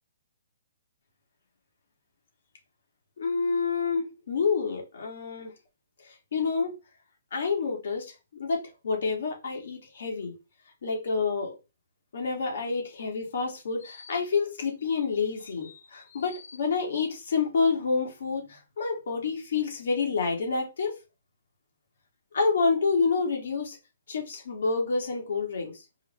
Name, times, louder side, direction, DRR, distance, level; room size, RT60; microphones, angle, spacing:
voice 1, 3.2-5.5 6.0-6.7 7.3-10.3 10.8-11.5 12.1-20.9 22.3-23.8 24.1-25.8, left 4 dB, 60° left, 1.5 m, -28 dB
4.6 x 2.1 x 3.5 m
hypercardioid pair, 170°, 0 cm